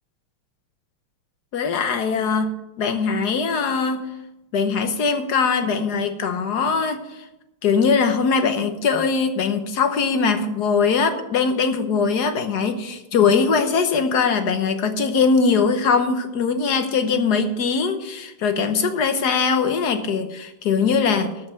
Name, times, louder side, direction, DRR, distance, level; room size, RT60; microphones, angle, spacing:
voice 1, 1.5-4.1 4.5-7.3 7.6-21.3, left 5 dB, 55° left, 8 dB, 1.3 m, -21 dB
13.0 x 5.3 x 8.1 m, 0.95 s
omnidirectional pair, 2.4 m